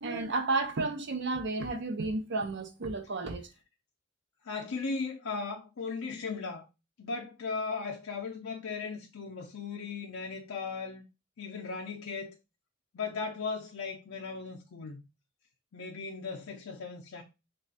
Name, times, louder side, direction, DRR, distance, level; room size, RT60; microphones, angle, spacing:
voice 1, 0.0-3.5, right 3 dB, 60° right, 0.6 m, -32 dB
voice 2, 4.4-6.6 7.0-11.0 11.4-12.3 12.9-15.0 15.7-17.2, left 4 dB, 90° left, 0.5 m, -37 dB
3.2 x 2.4 x 4.0 m
head